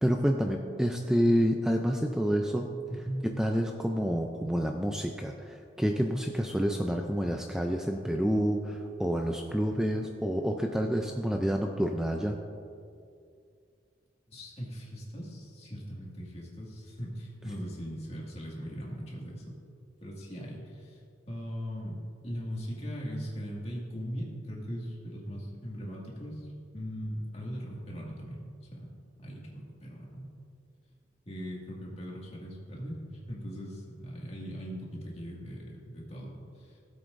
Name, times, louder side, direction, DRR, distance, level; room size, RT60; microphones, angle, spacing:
voice 1, 0.0-2.7 3.4-12.4, equal, 5° right, 3 dB, 0.4 m, -28 dB
voice 2, 2.9-3.3 14.3-19.6 20.0-21.0 21.3-22.0 22.2-28.9 29.2-30.3 31.3-36.8, equal, 35° left, -4 dB, 2.1 m, -39 dB
16.5 x 7.9 x 2.6 m, 2.3 s
head